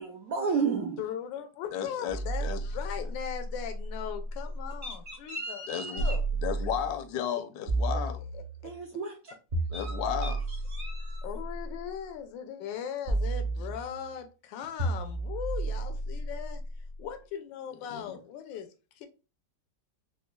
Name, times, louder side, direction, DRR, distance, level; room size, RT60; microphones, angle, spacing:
voice 1, 0.0-1.0 4.8-6.1 8.6-9.3 9.7-11.2, right 5 dB, 75° right, 0.8 m, -34 dB
voice 2, 1.0-5.6 5.9-6.2 7.9-8.7 11.2-16.6 17.0-18.7 19.0-19.1, left 8 dB, 85° left, 1.3 m, -39 dB
voice 3, 1.7-2.6 3.0-3.1 5.7-6.1 6.4-8.2 9.7-10.4 11.0-11.1 17.9-18.2, left 9 dB, 70° left, 0.9 m, -34 dB
sound 1, 2.1-4.8 6.0-7.0 7.7-8.8 9.5-11.8 13.1-14.2 14.8-16.9, right 2 dB, 45° right, 1.0 m, -32 dB
4.9 x 2.2 x 2.2 m
omnidirectional pair, 2.0 m